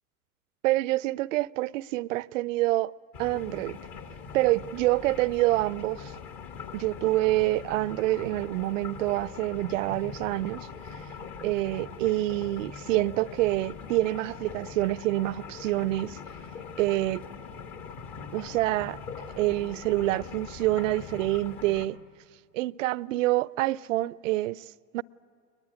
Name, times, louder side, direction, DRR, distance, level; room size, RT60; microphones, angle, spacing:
voice 1, 0.6-2.9 3.2-3.8 4.3-6.1 6.7-10.7 11.4-16.2 16.8-17.3 18.3-19.0 19.4-22.0 22.5-24.6 24.9-25.0, right 17 dB, 55° right, 0.5 m, -27 dB
sound 1, 3.1-21.9, left 6 dB, 45° left, 2.0 m, -42 dB
22.5 x 20.5 x 8.3 m
figure-of-eight pair, 90°, 46 cm